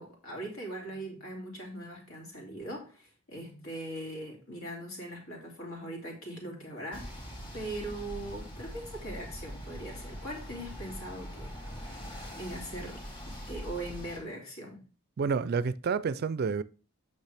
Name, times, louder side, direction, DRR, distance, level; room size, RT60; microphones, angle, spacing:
voice 1, 0.0-7.1 7.5-11.5 12.3-14.8, right 1 dB, 70° left, 2.9 m, -40 dB
sound 1, 6.9-14.2, equal, 25° left, 2.2 m, -42 dB
voice 2, 15.2-16.6, right 5 dB, 45° right, 0.4 m, -29 dB
8.1 x 6.2 x 3.4 m
head